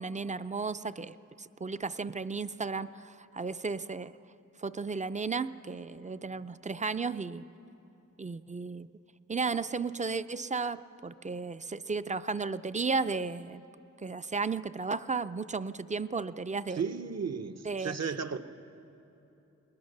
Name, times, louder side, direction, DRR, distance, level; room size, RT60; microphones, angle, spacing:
voice 1, 0.0-4.1 4.6-7.4 8.2-8.9 9.3-13.6 14.0-16.8 17.7-17.9, right 4 dB, 25° right, 13 dB, 0.4 m, -34 dB
voice 2, 16.7-18.4, right 6 dB, 60° right, 8 dB, 0.8 m, -34 dB
20.5 x 20.0 x 6.6 m, 2.9 s
wide cardioid pair, 120°, 30 cm